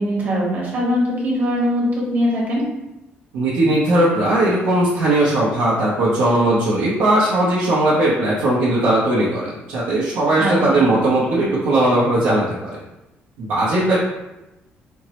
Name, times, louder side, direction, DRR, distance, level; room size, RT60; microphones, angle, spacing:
voice 1, 0.0-2.6 10.3-10.8, equal, 45° right, -4 dB, 1.1 m, -21 dB
voice 2, 3.3-12.8 13.4-14.0, right 1 dB, 85° right, -8 dB, 0.8 m, -18 dB
4.3 x 2.0 x 2.9 m, 0.97 s
cardioid pair, 135°, 4 cm